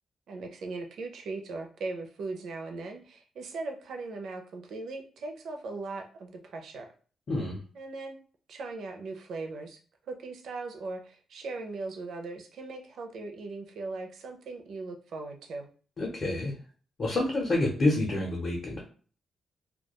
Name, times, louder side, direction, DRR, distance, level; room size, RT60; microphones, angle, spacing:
voice 1, 0.3-6.9 7.7-8.2 8.5-9.8 10.1-15.7, right 3 dB, 65° right, 4 dB, 0.4 m, -39 dB
voice 2, 7.3-7.6 16.0-16.5 17.0-18.8, left 2 dB, 35° left, -2 dB, 0.6 m, -28 dB
2.2 x 2.2 x 2.8 m, 0.41 s
cardioid pair, 150°, 0 cm